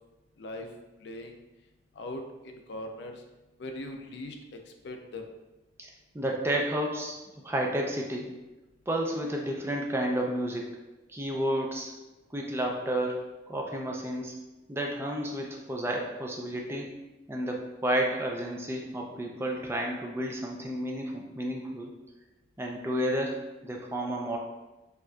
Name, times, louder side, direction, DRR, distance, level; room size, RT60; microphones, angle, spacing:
voice 1, 0.4-0.7 1.0-1.4 1.9-3.2 3.6-5.3, left 1 dB, 60° left, 4 dB, 0.4 m, -40 dB
voice 2, 6.1-7.2 7.4-8.3 8.9-10.7 11.1-11.9 12.3-13.2 13.5-14.3 14.7-16.9 17.3-21.9 22.6-24.4, right 1 dB, 15° right, 0 dB, 0.4 m, -31 dB
4.3 x 2.5 x 2.3 m, 1.1 s
head